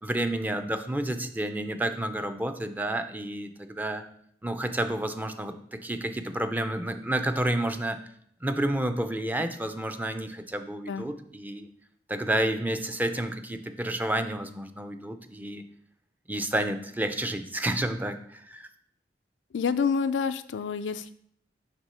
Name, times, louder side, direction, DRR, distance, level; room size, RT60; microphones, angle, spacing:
voice 1, 0.0-4.0 4.4-8.0 8.4-11.7 12.1-15.6 16.3-18.7, right 1 dB, 10° right, 7 dB, 0.4 m, -30 dB
voice 2, 19.5-21.1, left 5 dB, 85° left, 11 dB, 0.4 m, -28 dB
6.0 x 3.6 x 5.5 m, 0.67 s
head